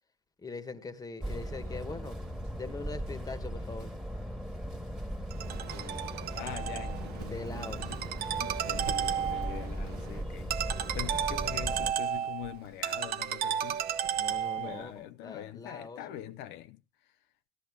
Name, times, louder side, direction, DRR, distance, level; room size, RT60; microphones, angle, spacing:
voice 1, 0.4-2.2 2.5-3.9 7.3-7.9 14.2-16.2, left 3 dB, 20° left, 1.3 m, -42 dB
sound 1, 1.2-11.9, equal, 5° right, 1.6 m, -38 dB
Ringtone, 5.3-14.9, right 9 dB, 70° right, 0.9 m, -34 dB
voice 2, 5.7-13.9 14.6-17.1, left 13 dB, 90° left, 0.6 m, -44 dB
18.0 x 12.5 x 2.3 m
cardioid pair, 110°, 17 cm